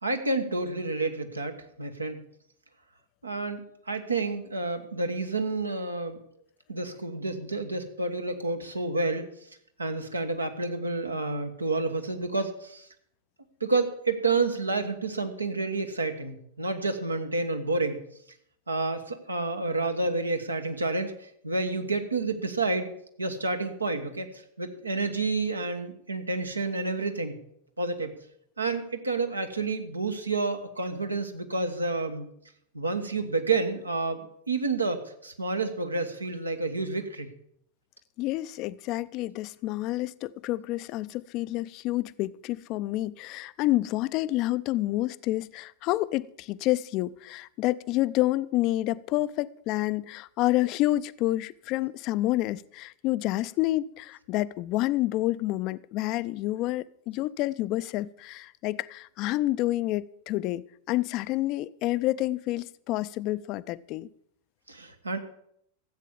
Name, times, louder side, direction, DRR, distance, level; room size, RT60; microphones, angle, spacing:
voice 1, 0.0-2.2 3.2-6.2 6.7-9.3 9.8-12.9 13.6-18.0 18.7-22.9 23.2-27.4 27.8-28.2 28.6-32.3 32.7-34.2 34.5-37.3 64.7-65.2, right 3 dB, 80° right, 1.3 m, -29 dB
voice 2, 38.2-64.1, left 16 dB, 40° left, 0.4 m, -28 dB
13.5 x 8.3 x 7.2 m
figure-of-eight pair, 90°, 0 cm